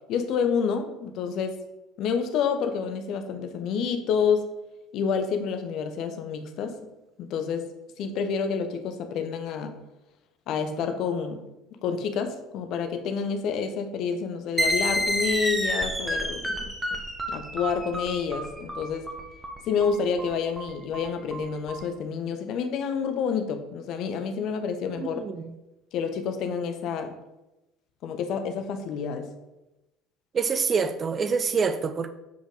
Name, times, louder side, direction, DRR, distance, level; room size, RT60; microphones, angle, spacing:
voice 1, 0.1-1.6 2.0-4.4 4.9-6.8 7.2-7.7 8.0-9.8 10.5-11.4 11.8-16.7 17.3-19.1 19.7-25.2 25.9-27.2 28.0-29.3, left 6 dB, 50° left, 0.7 m, -28 dB
sound 1, 14.6-21.8, equal, 10° right, 1.0 m, -29 dB
voice 2, 25.0-25.4 30.3-32.1, right 5 dB, 30° right, 0.6 m, -26 dB
7.2 x 5.1 x 3.7 m
figure-of-eight pair, 60°, 0 cm